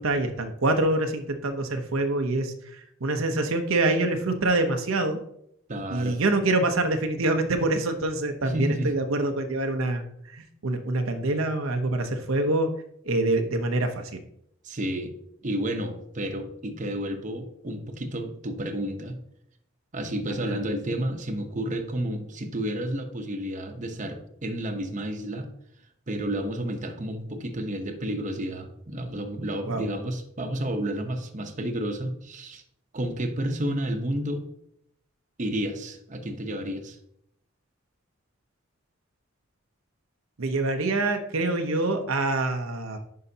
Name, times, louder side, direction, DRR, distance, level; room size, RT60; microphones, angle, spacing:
voice 1, 0.0-2.5 3.0-5.2 5.9-10.0 10.3-12.7 13.1-14.2 20.4-20.6 29.7-29.8 40.4-43.0, right 2 dB, 85° right, 5 dB, 0.8 m, -25 dB
voice 2, 5.7-6.2 8.4-8.9 14.6-15.1 15.4-19.2 19.9-25.5 26.1-32.6 32.9-34.4 35.4-37.0, right 1 dB, 40° right, 5 dB, 0.8 m, -31 dB
9.5 x 5.6 x 2.8 m, 0.74 s
head